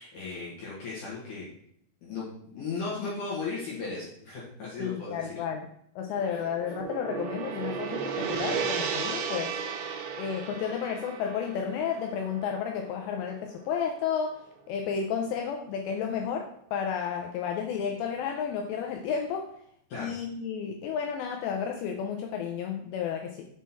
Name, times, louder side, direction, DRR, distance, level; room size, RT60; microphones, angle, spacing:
voice 1, 0.0-1.5 2.0-2.2 2.5-5.4 19.9-20.2, left 4 dB, 70° left, -6 dB, 2.0 m, -36 dB
voice 2, 4.8-5.6 6.0-9.5 10.2-14.4 14.7-19.5 20.0-23.5, left 7 dB, 85° left, 3 dB, 2.5 m, -32 dB
Gong, 6.0-14.4, right 6 dB, 80° right, 2.9 m, -35 dB
7.3 x 3.7 x 4.1 m, 0.67 s
omnidirectional pair, 5.6 m